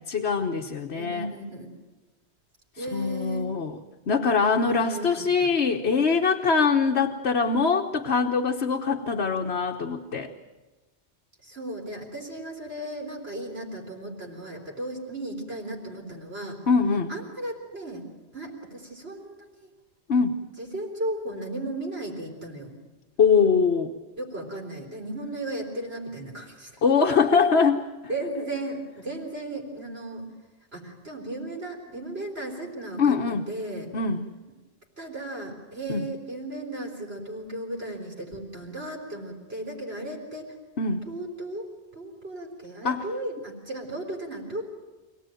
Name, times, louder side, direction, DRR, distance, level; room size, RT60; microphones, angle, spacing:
voice 1, 0.1-1.3 2.8-3.8 4.1-10.3 16.7-17.1 20.1-20.4 23.2-23.9 26.8-27.8 33.0-33.4 33.9-34.3 35.9-36.0 40.8-41.0 42.8-43.0, left 5 dB, 70° left, 2 dB, 1.4 m, -23 dB
voice 2, 0.9-1.7 2.8-3.5 4.7-5.5 11.4-16.6 17.1-18.1 18.3-19.7 20.6-22.7 24.2-26.8 28.1-30.3 30.7-33.2 33.5-33.9 35.0-40.4 41.1-41.7 41.9-44.6, right 1 dB, 65° right, 1 dB, 4.1 m, -35 dB
25.5 x 18.0 x 9.1 m, 1.2 s
omnidirectional pair, 1.1 m